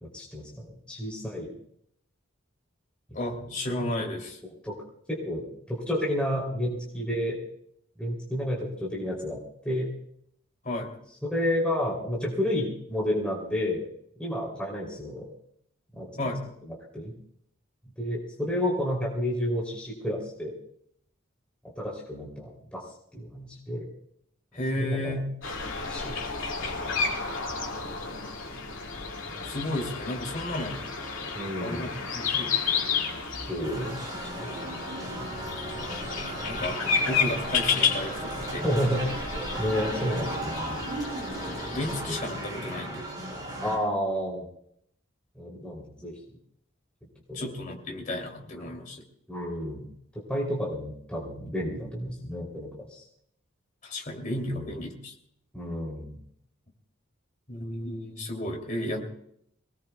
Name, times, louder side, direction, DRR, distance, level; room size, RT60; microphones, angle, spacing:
voice 1, 0.0-1.5 3.3-3.5 4.6-4.7 5.1-7.4 8.0-9.9 11.2-13.9 14.2-15.3 15.9-16.1 16.9-17.1 18.0-20.5 21.8-22.8 23.1-23.9 24.8-25.2 25.9-26.1 31.3-31.9 33.5-34.6 38.5-39.2 39.6-40.9 43.6-44.4 45.3-46.1 47.3-47.6 48.7-48.8 49.3-49.9 50.3-53.0 54.5-54.7 55.5-56.2, equal, 5° left, -4 dB, 3.0 m, -31 dB
voice 2, 3.1-4.4 10.6-11.0 16.2-16.4 24.5-25.4 29.4-30.8 31.6-32.7 36.1-36.8 37.0-38.6 41.5-43.1 47.3-49.0 53.8-55.1 57.5-59.0, left 1 dB, 40° left, 1 dB, 2.8 m, -33 dB
sound 1, 25.4-42.0, left 5 dB, 70° left, 2.4 m, -32 dB
sound 2, 33.6-43.8, right 1 dB, 20° right, 3.8 m, -35 dB
23.5 x 19.0 x 2.3 m, 0.70 s
head